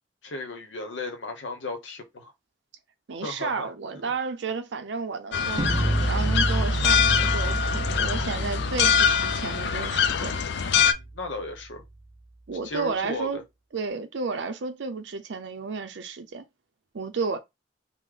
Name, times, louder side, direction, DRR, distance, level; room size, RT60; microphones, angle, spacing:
voice 1, 0.2-2.3 3.2-3.7 11.0-11.8 12.6-13.4, left 2 dB, 80° left, 0.8 m, -35 dB
voice 2, 3.1-10.4 12.5-13.4 13.7-16.4 16.9-17.4, right 4 dB, 70° right, 0.5 m, -32 dB
sound 1, 5.3-10.9, left 7 dB, 65° left, 0.4 m, -24 dB
sound 2, 5.6-11.6, right 1 dB, 25° right, 0.6 m, -29 dB
3.6 x 2.0 x 3.3 m
head